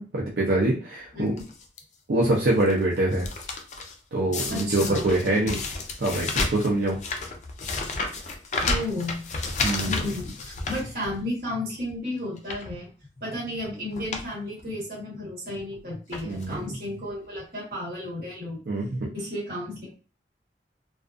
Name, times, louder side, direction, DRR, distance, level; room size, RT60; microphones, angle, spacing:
voice 1, 0.0-1.3 2.1-3.3 4.1-5.6 6.0-7.0 9.6-10.0 16.2-16.6 18.7-19.1, right 1 dB, 70° right, -4 dB, 0.6 m, -24 dB
voice 2, 1.1-1.4 4.5-5.1 8.7-9.2 9.9-12.9 13.2-18.6 19.1-19.9, left 1 dB, 55° right, -5 dB, 1.3 m, -33 dB
sound 1, 1.4-1.8 2.4-2.7 3.0-3.9 4.3-11.4 11.8-11.9 12.4-12.7 13.6-13.7 13.9-14.3 14.6-14.7 15.6-15.7 16.1-16.6 17.4-17.5 17.6-17.7, left 3 dB, 40° left, 0.4 m, -31 dB
2.4 x 2.3 x 2.4 m, 0.38 s
head